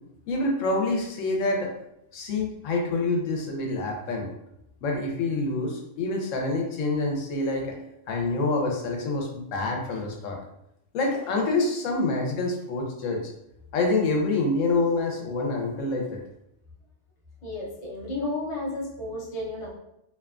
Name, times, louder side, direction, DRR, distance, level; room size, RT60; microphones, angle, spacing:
voice 1, 0.3-1.7 2.1-4.3 4.8-7.8 8.1-10.4 10.9-13.3 13.7-16.2, left 2 dB, 85° left, 1 dB, 1.0 m, -26 dB
voice 2, 17.4-19.7, left 2 dB, 40° left, -4 dB, 0.5 m, -32 dB
2.7 x 2.2 x 2.4 m, 0.83 s
omnidirectional pair, 1.3 m